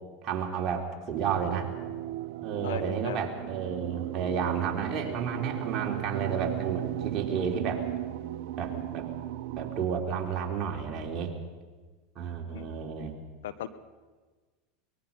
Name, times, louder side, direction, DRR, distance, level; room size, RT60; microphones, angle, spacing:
voice 1, 0.2-1.7 2.4-7.8 8.6-9.1 9.6-11.3 12.2-13.1, right 6 dB, 40° right, 1 dB, 3.6 m, -31 dB
sound 1, 1.1-9.9, right 14 dB, 70° right, 0.8 m, -36 dB
voice 2, 2.6-3.2 12.5-12.7 13.4-13.7, left 11 dB, 80° left, 12 dB, 1.1 m, -37 dB
23.5 x 20.5 x 5.5 m, 1.4 s
hypercardioid pair, 100°, 0 cm